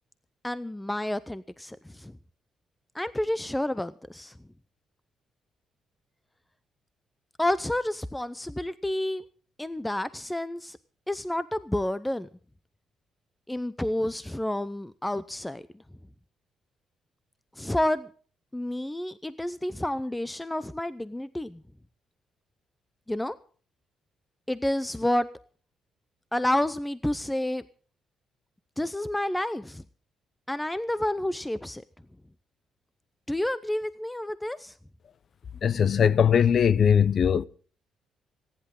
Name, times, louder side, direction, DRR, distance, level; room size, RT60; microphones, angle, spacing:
voice 1, 0.4-2.1 2.9-4.3 7.4-9.2 9.6-10.8 11.1-12.3 13.5-15.7 17.6-18.1 18.5-21.6 23.1-23.4 24.5-25.3 26.3-27.6 28.8-29.8 30.5-31.8 33.3-34.7, left 1 dB, 10° left, 0.6 m, -29 dB
voice 2, 35.6-37.5, left 7 dB, 50° left, 0.7 m, -20 dB
27.0 x 10.5 x 3.8 m
cardioid pair, 90°, 0 cm